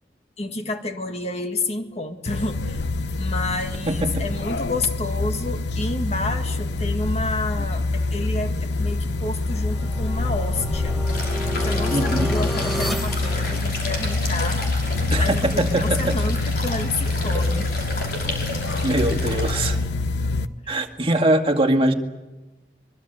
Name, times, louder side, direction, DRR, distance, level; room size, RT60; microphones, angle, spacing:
voice 1, 0.4-2.8 3.2-11.0 11.5-14.6 15.2-17.7 20.6-20.8, left 2 dB, 35° left, 6 dB, 1.9 m, -30 dB
sound 1, 2.3-20.5, left 2 dB, 85° left, 1.0 m, -25 dB
voice 2, 3.9-4.2 11.9-12.3 15.1-16.2 18.8-19.8 20.7-21.9, right 1 dB, 30° right, 4 dB, 2.1 m, -22 dB
sound 2, 9.1-14.3, left 1 dB, ahead, 1.3 m, -32 dB
sound 3, 11.1-19.7, left 2 dB, 60° left, 6.0 m, -33 dB
24.0 x 22.5 x 8.1 m, 1.1 s
head